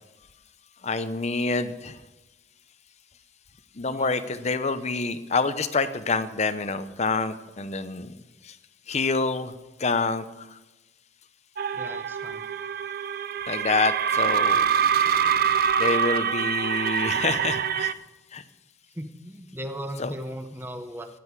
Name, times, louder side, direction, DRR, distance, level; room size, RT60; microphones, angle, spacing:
voice 1, 0.8-2.0 3.8-8.1 8.5-8.6 8.9-9.5 9.8-10.2 13.5-14.7 15.8-17.9 18.3-18.4 20.0-20.1, left 3 dB, 35° left, 12 dB, 0.8 m, -27 dB
voice 2, 3.9-4.3 11.7-12.4 19.0-21.1, equal, 10° right, 7 dB, 1.1 m, -37 dB
sound 1, 11.6-17.9, right 7 dB, 50° right, 0.5 m, -25 dB
15.0 x 10.5 x 4.8 m, 1.1 s
head